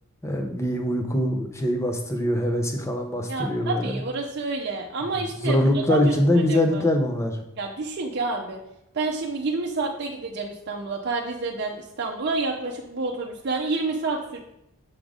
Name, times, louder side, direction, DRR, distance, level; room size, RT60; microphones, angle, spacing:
voice 1, 0.2-3.9 5.4-7.4, left 1 dB, 15° left, 3 dB, 0.6 m, -23 dB
voice 2, 3.3-6.2 6.5-6.8 7.6-8.6 8.9-14.4, right 3 dB, 50° right, -1 dB, 0.6 m, -29 dB
6.2 x 3.8 x 4.9 m, 0.83 s
head